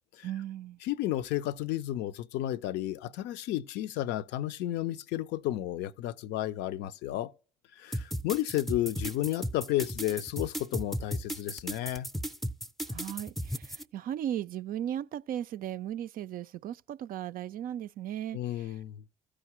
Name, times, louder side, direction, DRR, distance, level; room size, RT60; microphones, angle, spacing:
voice 1, 0.2-0.8 12.9-18.7, right 11 dB, 50° right, 0.4 m, -37 dB
voice 2, 0.8-7.3 7.7-12.1 18.3-19.0, left 14 dB, 65° left, 0.5 m, -32 dB
sound 1, 7.9-13.8, equal, ahead, 0.5 m, -35 dB
15.0 x 4.9 x 2.9 m
hypercardioid pair, 60°, 19 cm